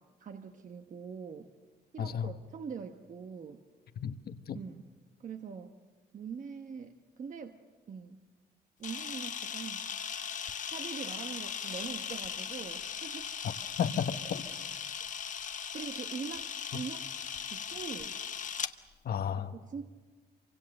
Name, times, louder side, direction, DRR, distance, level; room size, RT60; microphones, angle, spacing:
voice 1, 0.0-1.5 1.9-3.6 4.5-4.8 5.2-5.7 6.1-7.6 7.9-8.2 8.8-9.9 10.7-13.3 15.7-17.0 17.5-18.2 19.5-19.9, right 6 dB, 50° right, 6 dB, 1.2 m, -43 dB
voice 2, 2.0-2.3 4.0-4.6 13.8-14.4 19.0-19.5, left 8 dB, 65° left, 9 dB, 1.3 m, -33 dB
Camera, 8.8-18.7, left 7 dB, 45° left, 0.9 m, -38 dB
27.0 x 25.0 x 6.7 m, 1.4 s
cardioid pair, 115°, 17 cm